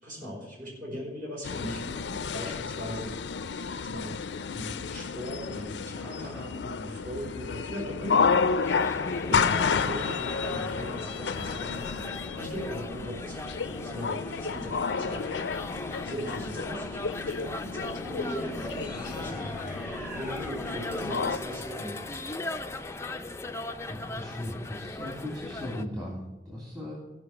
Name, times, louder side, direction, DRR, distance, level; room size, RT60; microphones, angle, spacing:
voice 1, 0.0-3.3 3.5-8.7 9.3-15.3 16.0-22.4, equal, 50° right, -4 dB, 5.1 m, -40 dB
sound 1, 1.4-21.4, left 5 dB, 85° left, 0.5 m, -31 dB
sound 2, 8.6-25.8, left 2 dB, 15° left, 0.4 m, -39 dB
sound 3, 18.0-22.5, equal, 5° right, 1.0 m, -39 dB
voice 2, 23.9-26.9, left 1 dB, 25° right, -4 dB, 2.6 m, -37 dB
15.5 x 5.6 x 7.0 m, 1.0 s
head